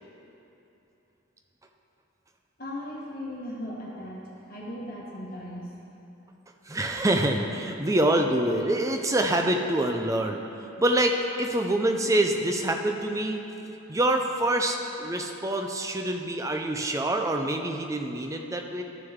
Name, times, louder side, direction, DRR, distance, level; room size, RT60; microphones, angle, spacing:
voice 1, 2.6-5.7, left 1 dB, 45° left, -4 dB, 1.6 m, -37 dB
voice 2, 6.7-10.4 10.8-13.4 13.9-18.8, right 1 dB, 15° right, 3 dB, 0.4 m, -26 dB
13.0 x 6.5 x 3.6 m, 3.0 s
head